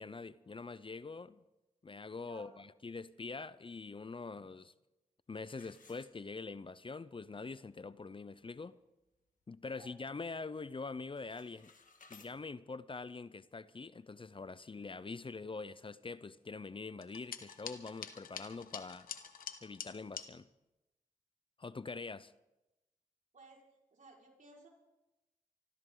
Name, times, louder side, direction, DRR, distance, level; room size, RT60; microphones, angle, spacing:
voice 1, 0.0-1.4 1.8-4.7 5.3-8.8 9.5-11.7 12.1-19.1 19.6-20.5 21.6-22.3, left 4 dB, 40° left, 0.7 m, -44 dB
voice 2, 2.2-2.6 9.7-9.9 12.2-12.3 23.3-23.6 23.9-24.7, right 3 dB, 65° right, 5.2 m, -58 dB
sound 1, 5.4-6.7 7.2-7.3 7.8-7.9 8.3-8.6 9.1-10.2 10.4-10.8 11.0-12.3, left 4 dB, 65° left, 1.9 m, -62 dB
sound 2, 17.0-20.3, left 7 dB, 90° left, 1.1 m, -46 dB
25.0 x 14.0 x 3.9 m
cardioid pair, 40°, 14 cm